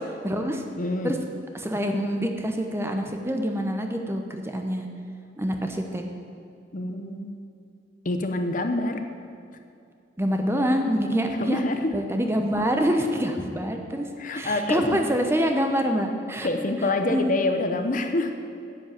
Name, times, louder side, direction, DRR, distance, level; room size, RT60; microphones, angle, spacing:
voice 1, 0.2-0.6 1.0-1.2 1.5-4.9 5.4-6.0 10.2-11.6 11.9-14.1 14.3-16.5 17.1-17.3, equal, 15° right, 4 dB, 0.8 m, -26 dB
voice 2, 0.8-1.1 6.7-7.4 8.0-9.0 11.4-11.9 14.2-15.0 16.4-18.3, left 2 dB, 45° left, 6 dB, 0.8 m, -26 dB
10.0 x 8.2 x 7.4 m, 2.5 s
head